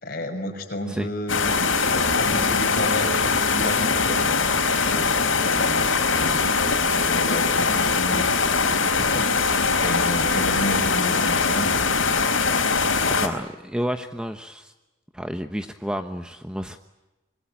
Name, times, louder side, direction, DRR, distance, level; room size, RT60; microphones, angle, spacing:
voice 1, 0.0-1.5 2.2-4.2 4.8-6.6 6.9-8.3 8.9-9.3 9.8-11.9, left 1 dB, 45° left, 5 dB, 5.9 m, -31 dB
sound 1, 1.3-13.3, left 4 dB, 75° left, 4.4 m, -21 dB
voice 2, 13.1-14.7 15.1-16.8, equal, 5° right, 7 dB, 1.0 m, -30 dB
26.5 x 22.0 x 9.0 m, 1.1 s
head